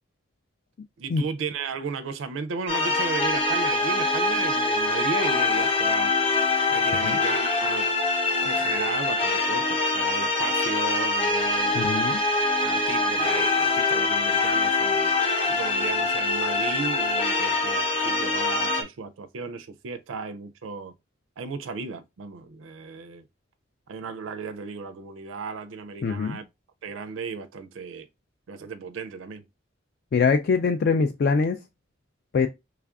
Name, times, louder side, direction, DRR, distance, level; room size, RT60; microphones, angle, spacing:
voice 1, 1.0-6.1 6.7-7.9 8.4-11.8 12.6-15.1 15.5-20.9 21.4-23.2 23.9-26.4 26.8-28.1 28.5-29.4, right 5 dB, 85° right, 0.4 m, -35 dB
sound 1, 2.7-18.8, left 3 dB, 30° left, 0.7 m, -24 dB
voice 2, 11.7-12.2 26.0-26.4 30.1-31.6 32.3-32.5, left 4 dB, 55° left, 0.3 m, -23 dB
3.2 x 2.4 x 3.5 m
head